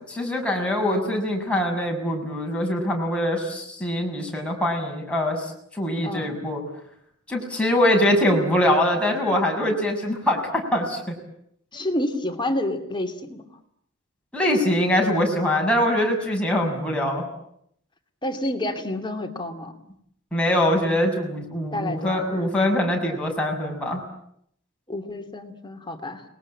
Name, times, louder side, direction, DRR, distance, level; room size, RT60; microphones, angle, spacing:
voice 1, 0.1-5.5 5.8-6.6 7.3-11.1 14.3-17.2 20.3-24.0, left 1 dB, 5° left, -1 dB, 6.7 m, -23 dB
voice 2, 6.0-6.4 11.7-13.4 18.2-19.8 21.7-22.4 24.9-26.2, left 1 dB, 25° left, 5 dB, 2.7 m, -29 dB
30.0 x 21.0 x 8.8 m, 0.70 s
head